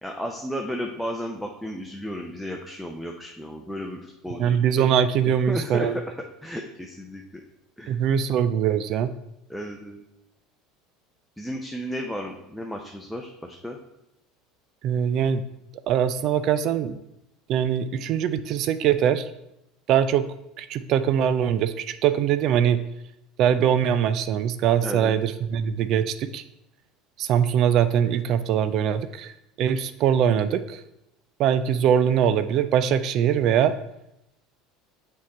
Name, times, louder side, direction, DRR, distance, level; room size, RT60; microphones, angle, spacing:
voice 1, 0.0-4.6 5.3-6.0 6.4-7.4 7.8-8.0 9.5-10.0 11.4-13.8 24.8-25.2 25.7-25.8, equal, ahead, 1 dB, 0.7 m, -33 dB
voice 2, 4.4-6.0 7.9-9.1 14.8-15.4 15.9-17.0 17.5-19.3 19.9-20.3 20.6-22.8 23.4-26.4 27.2-29.3 29.6-30.8 31.4-33.7, right 9 dB, 55° right, 12 dB, 0.3 m, -22 dB
6.3 x 3.7 x 4.1 m, 0.84 s
hypercardioid pair, 80°, 0 cm